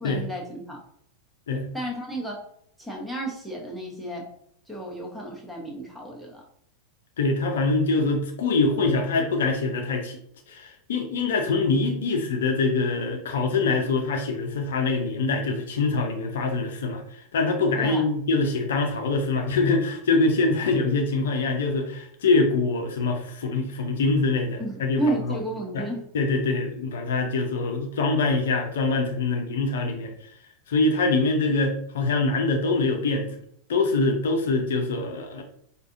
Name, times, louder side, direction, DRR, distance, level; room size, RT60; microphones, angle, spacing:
voice 1, 0.0-0.8 1.7-2.4 2.8-4.3 4.7-6.4 17.8-18.1 24.6-26.1, right 1 dB, 5° right, -1 dB, 1.0 m, -32 dB
voice 2, 7.2-10.2 10.5-25.0 25.3-25.4 25.7-25.8 26.1-30.1 30.7-33.3 33.7-35.4, left 3 dB, 60° left, 3 dB, 0.6 m, -24 dB
4.7 x 2.5 x 2.5 m, 0.68 s
figure-of-eight pair, 90°, 0 cm